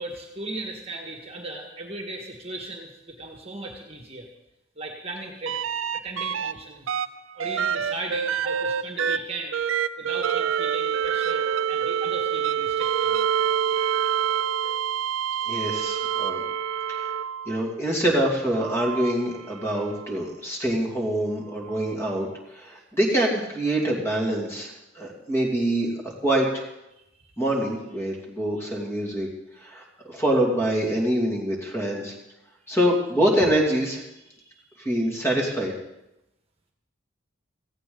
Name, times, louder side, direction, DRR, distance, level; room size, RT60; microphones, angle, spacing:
voice 1, 0.0-4.3 4.8-5.6 5.9-6.9 7.4-9.6 10.0-13.2 26.9-27.0, right 2 dB, 30° right, 2 dB, 1.7 m, -37 dB
sound 1, 5.5-6.5 6.9-17.6 18.5-20.1 21.8-21.9, right 8 dB, 80° right, 0.5 m, -27 dB
voice 2, 15.5-16.4 16.9-17.1 17.5-25.9 26.2-26.6 27.4-29.3 29.6-32.1 32.7-34.0 34.8-35.7, right 1 dB, 15° left, -1 dB, 2.6 m, -25 dB
17.5 x 15.5 x 4.0 m, 0.89 s
head